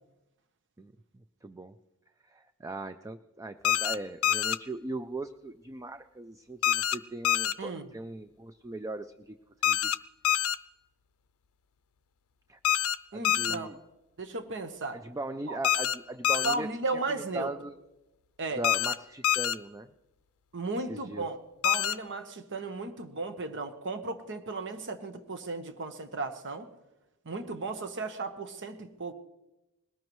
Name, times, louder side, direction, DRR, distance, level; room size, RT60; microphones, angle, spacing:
voice 1, 0.8-1.8 2.2-9.4 9.6-9.9 10.3-10.4 12.5-12.6 13.1-13.8 14.9-16.7 17.1-17.7 18.6-19.9 20.9-21.3, right 2 dB, 15° right, 10 dB, 0.4 m, -39 dB
sound 1, 3.6-4.0 4.2-4.6 6.6-7.0 7.2-7.5 9.6-10.0 10.2-10.6 12.6-13.0 13.2-13.6 15.6-15.9 16.2-16.6 18.6-18.9 19.2-19.5 21.6-21.9, left 11 dB, 70° left, 0.5 m, -26 dB
voice 2, 13.1-13.7 14.2-15.0 15.5-15.6 16.4-17.5 18.4-18.6 20.5-21.4 21.6-26.7 27.2-29.1, right 3 dB, 55° right, 8 dB, 1.0 m, -35 dB
20.5 x 18.5 x 3.1 m, 0.99 s
head